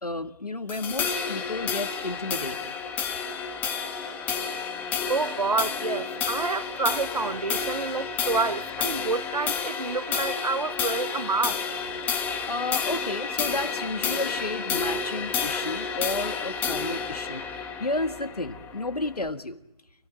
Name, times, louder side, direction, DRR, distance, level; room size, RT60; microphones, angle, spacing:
voice 1, 0.0-2.7 12.5-19.6, left 2 dB, 80° left, 1.8 m, -32 dB
sound 1, 0.7-19.3, left 6 dB, 10° left, 1.2 m, -30 dB
voice 2, 5.1-11.6, right 4 dB, 75° right, 0.9 m, -28 dB
28.5 x 17.0 x 9.4 m
figure-of-eight pair, 145°, 20 cm